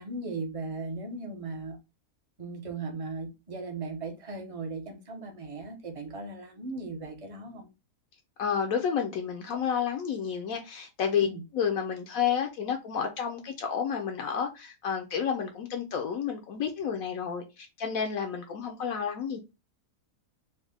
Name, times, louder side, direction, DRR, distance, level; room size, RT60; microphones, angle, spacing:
voice 1, 0.0-1.8 2.4-7.7 11.2-11.4, right 3 dB, 35° right, 0.6 m, -37 dB
voice 2, 8.4-11.3 11.5-19.4, left 7 dB, 70° left, 0.9 m, -30 dB
4.1 x 2.1 x 3.3 m
omnidirectional pair, 1.6 m